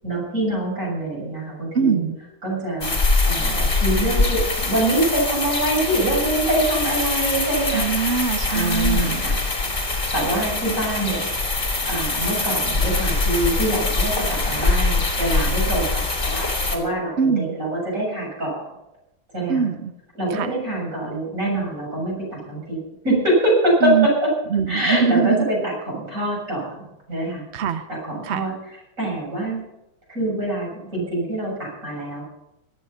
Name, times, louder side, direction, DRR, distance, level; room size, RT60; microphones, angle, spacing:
voice 1, 0.0-2.1 2.4-3.0 3.2-7.9 8.5-9.4 10.1-11.3 11.9-18.6 19.3-19.6 20.2-22.8 23.0-24.1 24.7-27.4 27.9-28.5 29.0-29.6 30.1-32.2, right 1 dB, 40° right, -3 dB, 7.8 m, -24 dB
voice 2, 1.7-2.2 7.7-9.2 10.4-10.5 17.2-17.6 19.5-19.9 20.3-20.5 23.8-24.1 24.5-25.4 27.5-27.8 28.2-28.5, right 6 dB, 60° right, 10 dB, 0.7 m, -22 dB
sound 1, 2.8-16.8, left 2 dB, 30° left, 2.8 m, -23 dB
17.5 x 13.0 x 5.6 m, 0.87 s
omnidirectional pair, 2.2 m